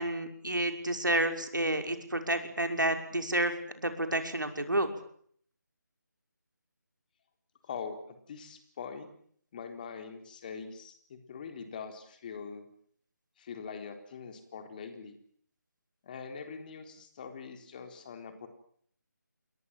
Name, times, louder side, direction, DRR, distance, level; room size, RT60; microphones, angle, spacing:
voice 1, 0.0-4.9, right 1 dB, 80° right, 5 dB, 5.8 m, -30 dB
voice 2, 7.6-9.1 9.5-12.7 13.4-15.1 16.0-18.5, left 6 dB, 25° left, 6 dB, 3.9 m, -43 dB
29.5 x 22.5 x 7.5 m, 0.63 s
figure-of-eight pair, 155°, 10 cm